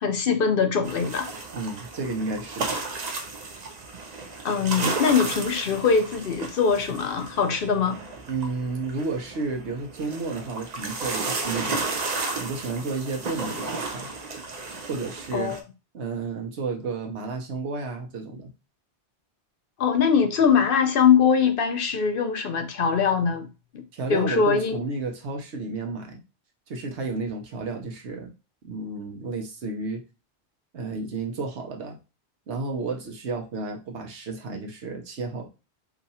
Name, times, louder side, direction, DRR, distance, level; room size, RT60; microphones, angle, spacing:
voice 1, 0.0-1.3 4.4-8.0 15.3-15.6 19.8-23.5 23.7-23.8 24.1-24.8, left 6 dB, 60° left, 0.7 m, -22 dB
sound 1, 0.8-15.6, right 3 dB, 45° right, 0.6 m, -33 dB
voice 2, 1.5-2.8 8.3-14.1 14.9-15.6 15.9-18.5 23.9-26.2 26.7-28.3 28.6-30.0 30.7-32.0 32.5-35.5, right 3 dB, 80° right, 1.1 m, -32 dB
2.8 x 2.5 x 4.1 m
omnidirectional pair, 1.1 m